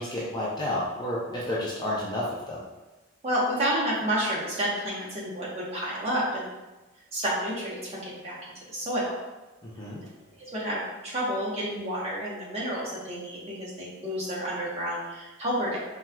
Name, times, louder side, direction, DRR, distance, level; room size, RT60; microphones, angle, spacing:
voice 1, 0.0-2.6 9.6-10.0, left 1 dB, 20° left, -6 dB, 0.5 m, -31 dB
voice 2, 3.2-6.5 7.1-8.4 8.7-9.1 10.4-15.8, equal, 30° right, -7 dB, 1.0 m, -30 dB
4.2 x 2.4 x 2.2 m, 1.1 s
head